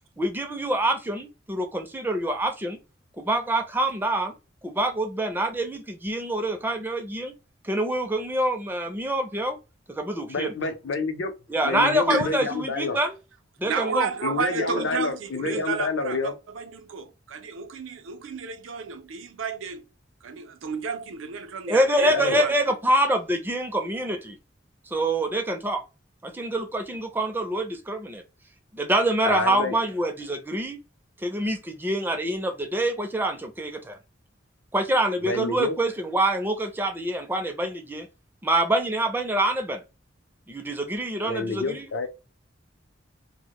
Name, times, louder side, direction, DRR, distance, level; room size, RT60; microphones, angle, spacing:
voice 1, 0.2-2.8 3.2-4.3 4.6-7.3 7.6-9.6 9.9-10.5 11.5-13.2 13.6-14.1 14.7-14.9 15.4-15.6 21.7-24.4 24.9-25.8 26.2-28.2 28.7-30.8 31.2-34.0 34.7-38.1 38.4-39.8 40.5-42.1, right 1 dB, 10° right, 0.4 m, -26 dB
voice 2, 10.3-11.3 11.6-13.0 14.2-16.4 22.1-22.4 29.2-29.7 35.2-35.7 41.2-42.1, left 3 dB, 70° left, 0.6 m, -28 dB
voice 3, 12.1-12.5 13.6-19.8 20.2-22.5, right 5 dB, 80° right, 0.5 m, -32 dB
2.1 x 2.1 x 2.8 m
head